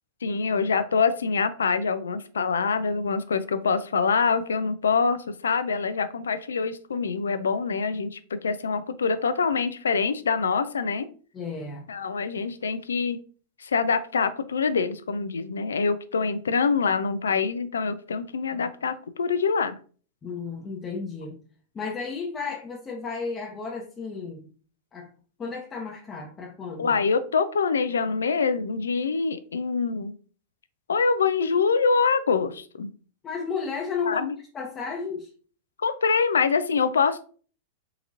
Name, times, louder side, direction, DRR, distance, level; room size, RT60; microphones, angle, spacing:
voice 1, 0.2-11.1 11.9-13.2 13.6-19.8 26.8-30.2 30.9-32.9 34.1-34.4 35.8-37.2, left 5 dB, 85° left, 12 dB, 0.4 m, -25 dB
voice 2, 11.3-11.8 20.2-21.4 21.7-24.5 24.9-25.1 25.4-27.0 33.2-34.2 34.5-35.3, left 5 dB, 25° left, -1 dB, 0.8 m, -33 dB
3.8 x 2.8 x 2.6 m, 0.41 s
hypercardioid pair, 100°, 0 cm